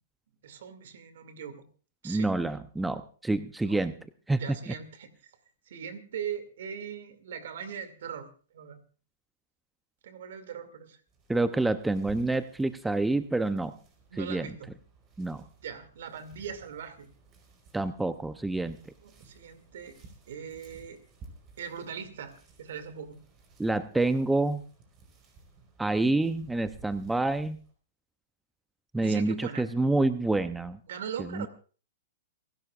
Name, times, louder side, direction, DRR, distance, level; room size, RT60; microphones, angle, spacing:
voice 1, 0.4-1.7 2.0-2.3 3.7-3.8 4.4-5.1 5.7-8.3 8.5-8.8 10.0-11.0 14.1-14.7 15.6-17.1 19.0-21.0 21.6-23.2 29.0-29.7 30.9-31.5, right 7 dB, 70° right, 10 dB, 2.4 m, -40 dB
voice 2, 2.0-3.9 4.3-4.7 11.3-13.7 14.2-14.5 15.2-15.4 17.7-18.8 23.6-24.6 25.8-27.6 28.9-30.8 31.2-31.5, right 2 dB, 5° right, 11 dB, 0.6 m, -27 dB
sound 1, 11.1-27.7, right 4 dB, 30° right, 4.6 m, -56 dB
28.0 x 12.0 x 2.5 m, 0.39 s
hypercardioid pair, 135°, 0 cm